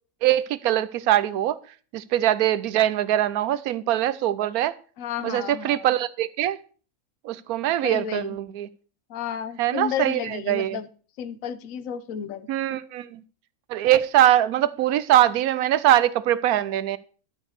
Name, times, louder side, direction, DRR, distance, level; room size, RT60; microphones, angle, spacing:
voice 1, 0.2-1.6 1.9-4.7 5.2-6.6 7.2-8.7 9.6-10.8 12.5-13.2 13.7-17.0, right 12 dB, 85° right, 1.1 m, -22 dB
voice 2, 5.0-5.9 7.8-8.4 9.1-10.9 11.2-12.5, left 8 dB, 70° left, 1.2 m, -32 dB
11.5 x 5.2 x 6.6 m
omnidirectional pair, 1.5 m